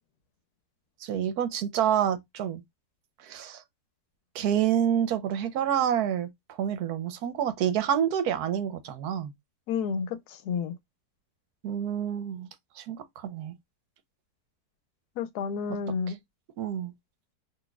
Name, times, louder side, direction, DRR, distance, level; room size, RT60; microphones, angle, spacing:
voice 1, 1.0-2.6 3.2-3.6 4.3-6.3 6.6-9.3 11.6-12.5 12.8-13.5 16.6-16.9, right 9 dB, 75° right, 1.2 m, -28 dB
voice 2, 9.7-10.7 15.2-16.2, left 6 dB, 90° left, 1.1 m, -31 dB
4.0 x 2.9 x 2.2 m
omnidirectional pair, 1.6 m